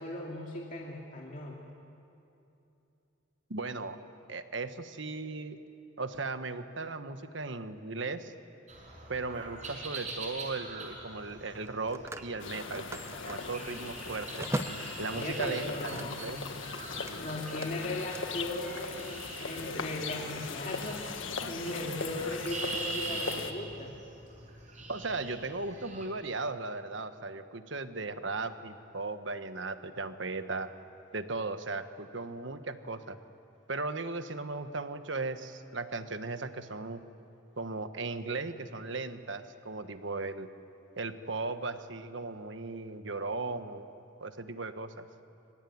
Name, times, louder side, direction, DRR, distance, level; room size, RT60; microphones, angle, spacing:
voice 1, 0.0-1.6 15.1-16.2 17.2-23.9, left 1 dB, 40° left, -2 dB, 2.6 m, -37 dB
voice 2, 3.5-4.0 4.3-5.6 6.0-8.3 9.1-14.5 15.0-16.4 24.9-30.7 31.1-33.2 33.7-37.0 37.6-40.5 41.0-45.1, right 3 dB, 65° right, 9 dB, 1.3 m, -37 dB
sound 1, 8.7-26.1, right 3 dB, 35° right, 6.0 m, -44 dB
Telephone, 9.3-9.5 11.5-16.3 16.6-18.2, right 1 dB, 15° right, 0.7 m, -41 dB
sound 2, 12.4-23.5, left 4 dB, 80° left, 1.7 m, -39 dB
25.0 x 24.5 x 9.5 m, 2.8 s
head